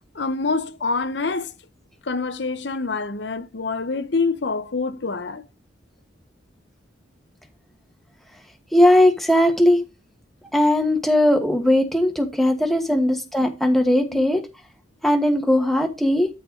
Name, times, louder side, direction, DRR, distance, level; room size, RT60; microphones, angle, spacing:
voice 1, 0.1-1.5 2.0-5.4 12.9-13.0 14.1-14.2, left 4 dB, 65° left, 0.8 m, -26 dB
voice 2, 8.7-9.8 10.5-14.4 15.0-16.3, left 1 dB, ahead, 1.2 m, -18 dB
13.0 x 4.4 x 3.7 m
head